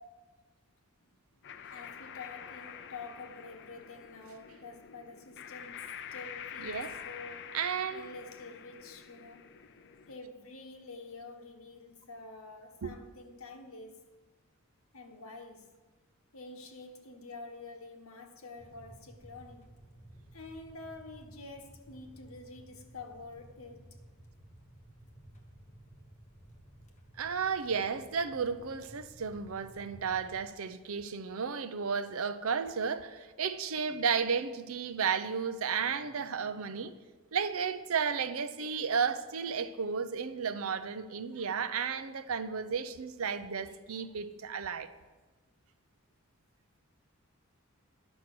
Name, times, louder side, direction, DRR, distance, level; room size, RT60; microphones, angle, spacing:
voice 1, 1.0-1.4 1.7-7.6 7.9-9.5 10.1-14.0 14.9-15.7 16.3-19.7 20.3-23.9, left 3 dB, 75° left, 1.2 m, -48 dB
sound 1, 1.4-10.2, left 8 dB, 55° left, 0.6 m, -47 dB
voice 2, 6.6-6.9 7.5-8.1 12.8-12.9 27.2-36.9 37.3-44.9, right 6 dB, 75° right, 0.6 m, -33 dB
sound 2, 18.6-30.5, right 1 dB, 35° left, 1.3 m, -55 dB
10.5 x 6.3 x 6.0 m
head